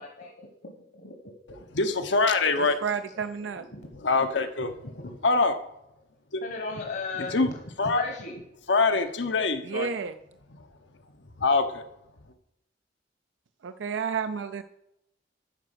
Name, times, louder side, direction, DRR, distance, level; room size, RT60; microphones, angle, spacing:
voice 1, 0.0-1.6 2.5-3.9 5.0-5.1 6.4-8.4, left 3 dB, 60° left, 2 dB, 1.3 m, -38 dB
voice 2, 1.7-2.7 4.0-4.7 5.2-5.5 7.3-7.5 7.8-8.0 8.7-9.9 11.4-11.8, left 3 dB, 85° left, 8 dB, 0.9 m, -23 dB
voice 3, 2.6-3.6 9.6-10.2 13.6-14.6, right 6 dB, 90° right, 9 dB, 0.4 m, -31 dB
9.3 x 5.0 x 6.6 m, 0.82 s
head